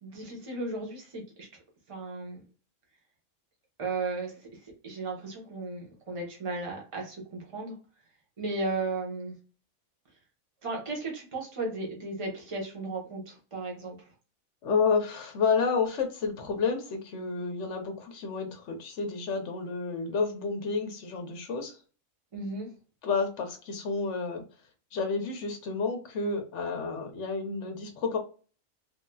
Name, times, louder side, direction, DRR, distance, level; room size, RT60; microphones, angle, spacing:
voice 1, 0.0-1.5 1.9-2.4 3.8-7.7 8.4-9.3 10.6-14.0 22.3-22.7, right 3 dB, 25° right, -1 dB, 1.0 m, -35 dB
voice 2, 14.6-21.8 23.0-24.4 24.9-28.2, left 5 dB, 60° left, 5 dB, 1.0 m, -30 dB
3.2 x 2.8 x 2.3 m, 0.36 s
omnidirectional pair, 1.5 m